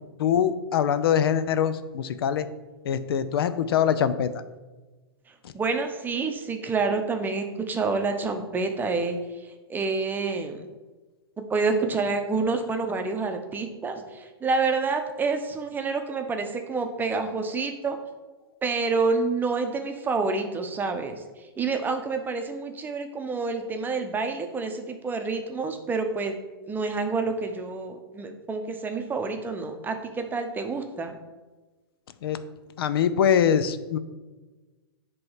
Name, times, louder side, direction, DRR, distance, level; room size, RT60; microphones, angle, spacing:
voice 1, 0.2-2.5 2.8-4.4 5.4-5.5 32.2-32.4 32.8-34.0, left 8 dB, 65° left, 12 dB, 0.5 m, -23 dB
voice 2, 5.5-9.2 9.7-10.6 11.4-18.0 18.6-21.2 21.6-26.4 26.7-31.2, right 4 dB, 15° right, 5 dB, 0.7 m, -28 dB
7.6 x 3.1 x 5.6 m, 1.2 s
hypercardioid pair, 115°, 13 cm